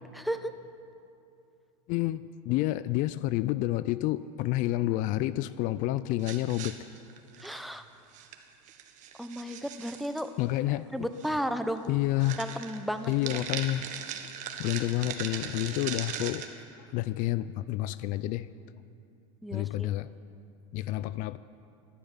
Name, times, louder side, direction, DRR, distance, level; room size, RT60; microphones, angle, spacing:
voice 1, 0.1-0.5 7.4-7.8 9.2-10.3 10.9-11.8 12.4-13.4 19.4-19.9, equal, ahead, 9 dB, 0.7 m, -34 dB
voice 2, 1.9-6.7 10.4-10.8 11.9-12.4 13.1-13.9 14.6-16.5 16.9-18.5 19.5-20.1 20.7-21.4, left 16 dB, 50° left, 16 dB, 0.4 m, -29 dB
sound 1, 6.2-7.8 8.1-8.4 8.7-10.3 11.2-11.3 11.7-11.9 12.2-16.5, right 9 dB, 50° right, 1.4 m, -39 dB
14.0 x 11.5 x 7.3 m, 2.6 s
supercardioid pair, 115°, 17 cm